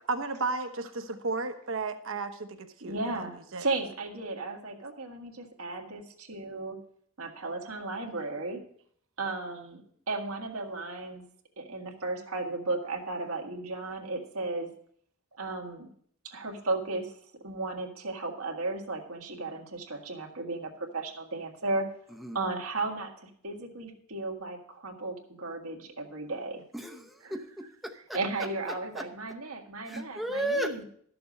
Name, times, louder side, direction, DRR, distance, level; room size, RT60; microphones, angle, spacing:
voice 1, 0.1-3.2 3.5-3.7, right 3 dB, 65° right, 7 dB, 1.0 m, -33 dB
voice 2, 2.8-6.8 7.2-8.6 9.2-9.8 10.1-11.2 11.6-14.7 15.4-15.9 16.2-17.1 17.4-21.9 22.3-26.6 27.2-27.4 27.9-30.8, right 3 dB, 85° right, 2 dB, 1.7 m, -35 dB
voice 3, 26.7-28.2 28.9-29.0 29.9-30.8, right 1 dB, ahead, 3 dB, 0.7 m, -34 dB
12.5 x 6.9 x 5.2 m, 0.62 s
head